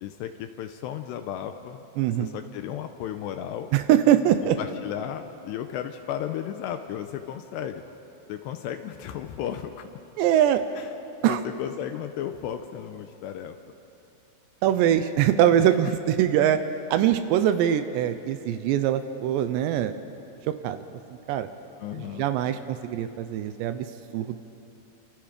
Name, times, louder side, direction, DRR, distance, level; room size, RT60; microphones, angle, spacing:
voice 1, 0.0-1.8 2.2-3.7 4.4-7.8 8.3-9.9 10.8-10.9 11.2-13.6 21.8-22.3, left 10 dB, 85° left, 7 dB, 2.5 m, -34 dB
voice 2, 2.0-2.3 3.7-4.6 10.2-10.6 11.2-11.4 14.6-16.6 16.9-19.9 20.5-20.8 21.1-21.5 21.9-23.9 24.1-24.4, right 11 dB, 80° right, 10 dB, 2.6 m, -23 dB
28.0 x 27.5 x 5.0 m, 2.9 s
omnidirectional pair, 5.7 m